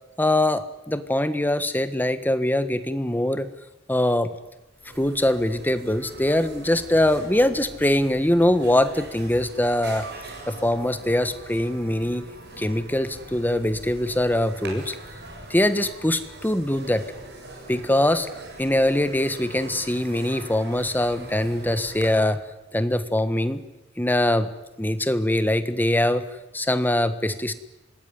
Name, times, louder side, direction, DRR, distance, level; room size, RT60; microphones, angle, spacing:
voice 1, 0.2-3.5 3.9-4.3 5.0-10.1 10.5-12.2 12.6-14.9 15.5-17.1 17.7-18.3 18.6-22.4 22.7-23.6 24.0-24.5 24.8-26.2 26.5-27.5, left 1 dB, 10° left, 11 dB, 1.4 m, -22 dB
sound 1, 4.5-4.6 4.7-22.2, right 2 dB, 60° right, 7.3 m, -42 dB
26.0 x 20.0 x 9.7 m, 0.97 s
head